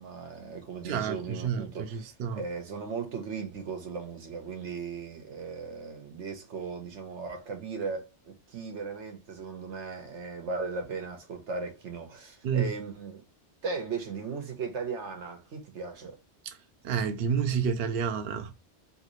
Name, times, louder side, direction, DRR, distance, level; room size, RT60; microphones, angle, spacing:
voice 1, 0.0-13.2 13.6-16.1, right 4 dB, 90° right, 1.2 m, -37 dB
voice 2, 0.8-2.4 12.4-12.7 16.8-18.5, right 7 dB, 65° right, 0.7 m, -29 dB
3.2 x 2.7 x 3.0 m
omnidirectional pair, 1.2 m